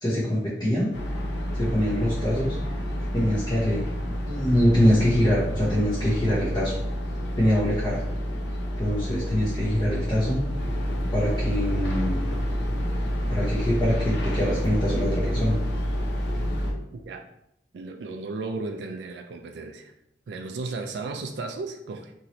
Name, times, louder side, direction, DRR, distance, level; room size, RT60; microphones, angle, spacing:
voice 1, 0.0-0.9 1.5-2.6 3.1-3.8 4.2-6.7 7.4-8.0 8.8-10.4 11.1-12.3 13.3-15.6, equal, 25° left, -8 dB, 0.7 m, -24 dB
sound 1, 0.9-16.7, equal, 80° left, 0.7 m, -28 dB
voice 2, 16.9-17.3 17.7-19.9 20.3-22.1, right 3 dB, 75° right, 5 dB, 0.3 m, -34 dB
3.0 x 2.7 x 2.9 m, 0.80 s
head